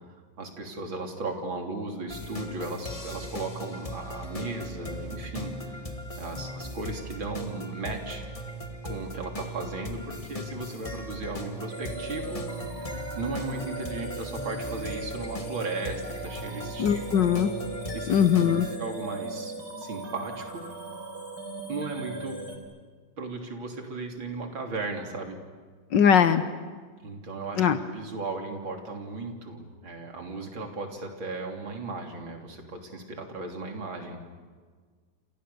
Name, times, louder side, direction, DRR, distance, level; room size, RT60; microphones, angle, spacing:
voice 1, 0.4-5.8 6.2-8.2 8.8-17.2 17.9-18.3 18.8-20.7 21.7-22.4 23.2-25.4 27.0-34.2, right 3 dB, 75° right, 3 dB, 4.0 m, -36 dB
sound 1, 2.1-18.8, equal, 20° left, 1.4 m, -38 dB
sound 2, 11.7-22.6, right 2 dB, 55° right, 4.5 m, -38 dB
voice 2, 16.8-17.5 18.1-18.7 25.9-26.4 27.6-27.8, left 8 dB, 65° left, 10 dB, 1.6 m, -20 dB
29.5 x 27.5 x 6.9 m, 1.6 s
omnidirectional pair, 2.2 m